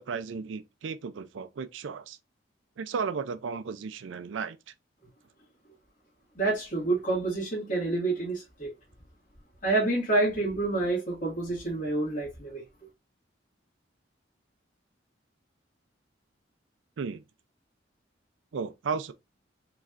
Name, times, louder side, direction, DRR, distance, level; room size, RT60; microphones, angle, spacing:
voice 1, 0.0-2.2 2.8-4.6 17.0-17.2 18.5-19.1, right 5 dB, 75° right, 0.4 m, -34 dB
voice 2, 6.4-8.7 9.6-12.6, right 2 dB, 45° left, 1.9 m, -28 dB
4.9 x 3.1 x 2.4 m
head